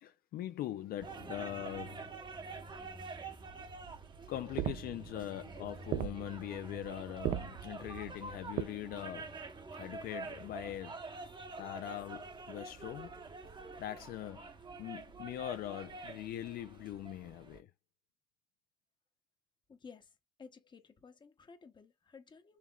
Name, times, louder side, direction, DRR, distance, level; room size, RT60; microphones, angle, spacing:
voice 1, 0.0-2.2 4.3-9.4 9.8-11.0 11.6-13.2 13.8-14.5 14.8-17.7, left 13 dB, 65° left, 0.4 m, -42 dB
sound 1, 1.0-17.6, right 3 dB, 25° right, 0.8 m, -47 dB
sound 2, 3.5-8.6, right 13 dB, 65° right, 0.4 m, -39 dB
voice 2, 19.7-22.6, left 5 dB, 25° left, 0.9 m, -55 dB
5.6 x 3.1 x 2.3 m
cardioid pair, 110°, 17 cm